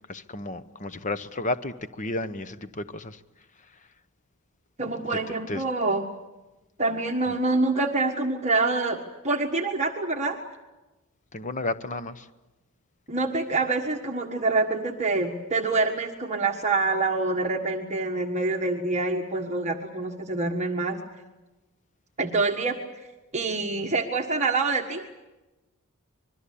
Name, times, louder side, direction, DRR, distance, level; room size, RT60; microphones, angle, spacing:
voice 1, 0.1-3.2 5.5-5.6 7.3-7.4 11.3-12.3, left 2 dB, 35° left, 13 dB, 1.0 m, -32 dB
voice 2, 4.8-6.1 6.8-10.4 13.1-21.0 22.2-22.8 23.3-25.0, right 3 dB, 30° right, 2 dB, 1.6 m, -26 dB
25.5 x 22.0 x 8.5 m, 1.1 s
head